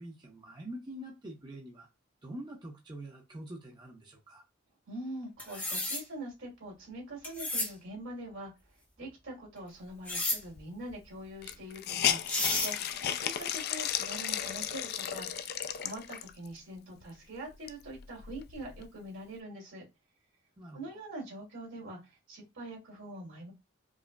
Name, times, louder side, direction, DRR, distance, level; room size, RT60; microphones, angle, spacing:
voice 1, 0.0-1.9 2.2-4.4 20.6-20.9, right 1 dB, 25° right, 0.6 m, -45 dB
voice 2, 4.9-8.5 9.0-19.8 20.7-23.5, right 1 dB, 75° right, 2.1 m, -44 dB
sound 1, 5.4-6.0 7.2-7.7 10.1-10.4 11.9-12.0 12.3-12.7, left 1 dB, 10° left, 0.8 m, -32 dB
Hiss, 10.6-10.7 10.9-11.0 11.4-16.5 17.0-17.1 17.5-18.9, left 10 dB, 55° left, 0.3 m, -34 dB
4.7 x 2.0 x 2.2 m
head